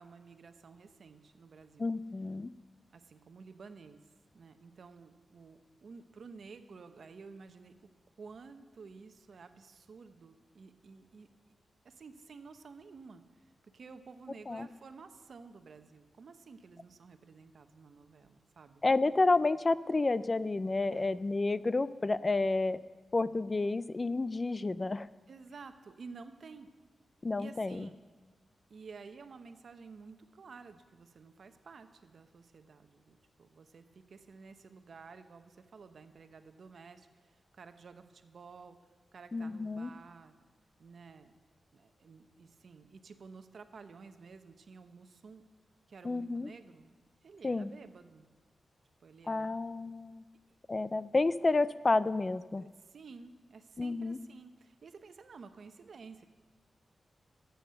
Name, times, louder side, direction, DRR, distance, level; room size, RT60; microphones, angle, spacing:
voice 1, 0.0-1.9 2.9-4.0 4.3-7.9 8.2-11.3 11.8-18.8 20.8-21.2 25.3-26.7 27.4-28.0 28.7-38.8 39.1-40.3 40.8-41.3 41.7-45.4 45.9-47.0 47.2-48.3 49.0-49.6 52.3-56.3, right 4 dB, 65° right, 9 dB, 0.8 m, -52 dB
voice 2, 1.8-2.5 14.5-14.7 18.8-22.8 23.1-25.1 27.2-27.9 39.3-39.9 46.0-46.5 47.4-47.7 49.3-50.2 50.7-52.6 53.8-54.2, left 3 dB, 30° left, 16 dB, 0.3 m, -30 dB
13.0 x 7.9 x 6.9 m, 1.4 s
wide cardioid pair, 95°, 0 cm